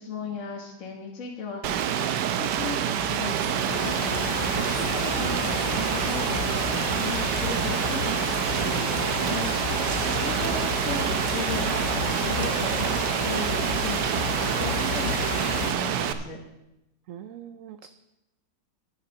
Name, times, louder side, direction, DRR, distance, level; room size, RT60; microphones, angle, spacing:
voice 1, 0.0-9.5 9.8-16.4, left 4 dB, 50° left, 0 dB, 1.6 m, -37 dB
Rain, 1.6-16.1, right 9 dB, 90° right, 1.3 m, -27 dB
sound 1, 3.1-15.7, left 9 dB, 65° left, 0.9 m, -33 dB
sound 2, 8.1-15.6, equal, 10° right, 1.0 m, -43 dB
voice 2, 10.0-10.4 17.1-17.9, right 8 dB, 70° right, 9 dB, 0.8 m, -41 dB
11.0 x 8.5 x 5.2 m, 0.92 s
omnidirectional pair, 1.8 m